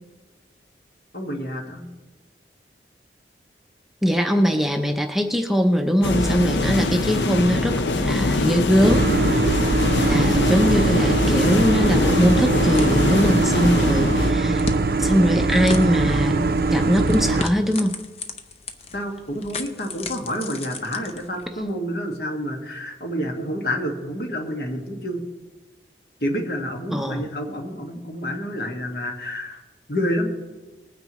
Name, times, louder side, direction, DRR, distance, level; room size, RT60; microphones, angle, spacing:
voice 1, 1.1-1.8 18.9-25.2 26.2-29.6 29.9-30.3, equal, 60° left, 2 dB, 1.8 m, -28 dB
voice 2, 4.0-9.6 10.0-14.7 15.0-16.4 16.7-18.0 26.9-27.2, equal, ahead, 3 dB, 0.6 m, -21 dB
sound 1, 6.0-14.3, left 2 dB, 85° left, 0.7 m, -22 dB
sound 2, 8.8-17.4, right 3 dB, 55° right, 0.6 m, -21 dB
sound 3, 14.3-21.7, left 2 dB, 35° left, 0.7 m, -36 dB
20.0 x 9.3 x 3.1 m, 1.2 s
head